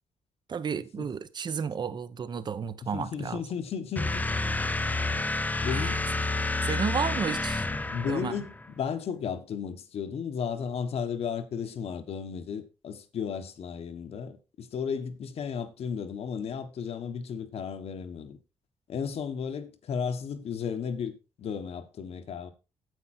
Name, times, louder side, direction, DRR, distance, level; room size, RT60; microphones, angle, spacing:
voice 1, 0.5-3.4 5.7-6.0 6.6-7.7 8.1-8.4, right 6 dB, 40° right, 0.9 m, -32 dB
voice 2, 2.9-4.2 5.6-6.0 7.9-18.4 18.9-22.5, left 7 dB, 65° left, 1.4 m, -34 dB
sound 1, 4.0-8.7, left 2 dB, 15° left, 0.6 m, -29 dB
9.3 x 8.3 x 4.4 m
wide cardioid pair, 140°, 11 cm